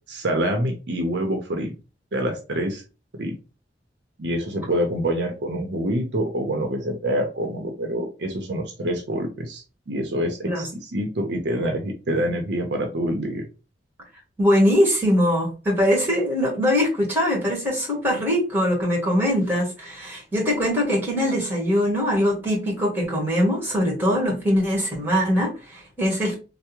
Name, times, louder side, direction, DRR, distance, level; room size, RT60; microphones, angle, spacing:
voice 1, 0.1-1.7 2.1-2.8 3.1-3.4 4.2-13.4, right 1 dB, 65° right, 3 dB, 0.6 m, -26 dB
voice 2, 14.4-26.3, equal, 10° right, -2 dB, 1.3 m, -22 dB
3.4 x 2.0 x 2.9 m, 0.31 s
head